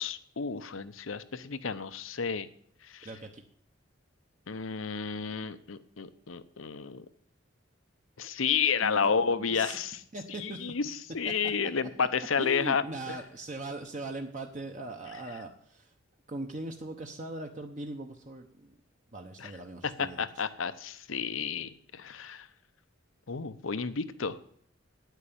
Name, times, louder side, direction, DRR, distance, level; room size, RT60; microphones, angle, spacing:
voice 1, 0.0-2.5 2.8-3.1 4.5-7.1 8.2-10.0 10.3-13.2 19.4-19.5 20.0-22.5 23.3-24.4, left 6 dB, 90° left, 13 dB, 0.8 m, -31 dB
voice 2, 3.0-3.4 8.8-9.8 10.1-10.7 12.4-15.9 16.3-18.7 19.1-20.2, right 2 dB, 40° right, 4 dB, 1.0 m, -40 dB
9.4 x 9.0 x 8.6 m, 0.63 s
head